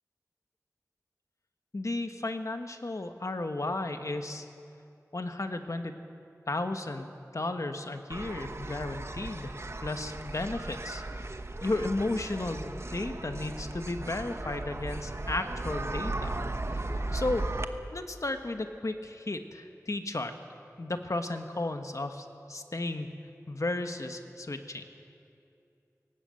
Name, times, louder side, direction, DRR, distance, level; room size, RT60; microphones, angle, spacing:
voice 1, 1.7-4.5 5.1-5.9 6.5-11.0 11.6-16.3 16.7-17.5 17.9-20.3 20.8-23.1 23.5-24.8, left 2 dB, 60° left, 6 dB, 1.4 m, -34 dB
sound 1, 8.1-17.6, right 2 dB, 50° right, 1.0 m, -36 dB
18.5 x 18.0 x 7.8 m, 2.6 s
wide cardioid pair, 45°, 6 cm